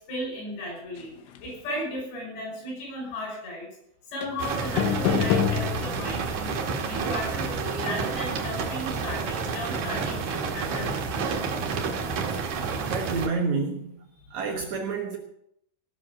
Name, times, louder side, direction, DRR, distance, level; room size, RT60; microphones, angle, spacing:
voice 1, 0.1-1.1 1.4-3.7 4.1-6.6 6.9-11.2 14.3-14.4, left 1 dB, 65° left, 7.9 m, -35 dB
sound 1, 4.2-4.4 4.8-6.4, left 9 dB, 85° left, 3.4 m, -26 dB
sound 2, 4.4-13.3, right 5 dB, 60° right, 2.4 m, -30 dB
voice 2, 12.8-13.9 14.3-15.2, right 4 dB, 75° right, 1.7 m, -29 dB
18.5 x 6.7 x 7.4 m
omnidirectional pair, 5.3 m